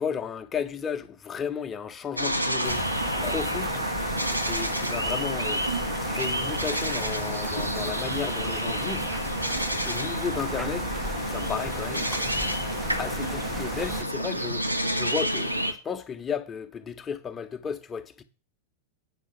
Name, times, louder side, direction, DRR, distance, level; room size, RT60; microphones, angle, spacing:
voice 1, 0.0-3.8 4.5-9.1 9.8-10.9 11.3-12.1 13.0-18.2, left 7 dB, 20° left, 1.3 m, -34 dB
sound 1, 2.2-15.7, equal, 90° right, 1.1 m, -29 dB
sound 2, 2.6-14.0, equal, ahead, 0.7 m, -37 dB
9.3 x 5.7 x 6.8 m
figure-of-eight pair, 90°, 0 cm